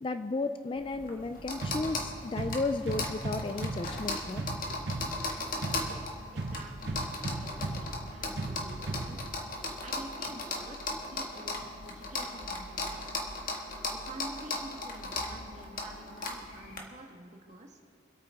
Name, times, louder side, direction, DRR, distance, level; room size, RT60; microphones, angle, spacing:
voice 1, 0.0-4.4, left 3 dB, 30° left, 9 dB, 0.3 m, -34 dB
sound 1, 0.8-16.8, left 2 dB, 50° left, 1.6 m, -37 dB
sound 2, 1.6-9.6, right 2 dB, 65° right, 0.8 m, -38 dB
voice 2, 6.3-13.1 14.0-17.8, right 1 dB, 40° right, 2 dB, 1.4 m, -48 dB
26.0 x 8.8 x 3.5 m, 2.5 s
head